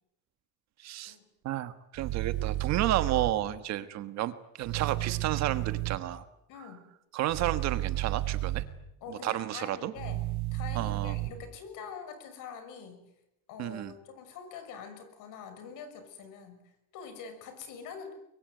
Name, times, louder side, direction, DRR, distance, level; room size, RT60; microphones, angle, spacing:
voice 1, 0.8-1.1 1.4-6.2 7.1-8.6 9.1-9.9 10.7-11.1 13.6-13.9, right 13 dB, 45° right, 11 dB, 1.4 m, -31 dB
sound 1, 1.9-3.3 4.6-6.0 7.3-8.6 10.0-11.3, right 17 dB, 70° right, 5.7 m, -32 dB
voice 2, 6.5-6.9 9.0-13.1 13.5-18.1, left 6 dB, 55° left, 9 dB, 6.1 m, -45 dB
24.5 x 22.5 x 9.4 m, 0.86 s
cardioid pair, 175°, 37 cm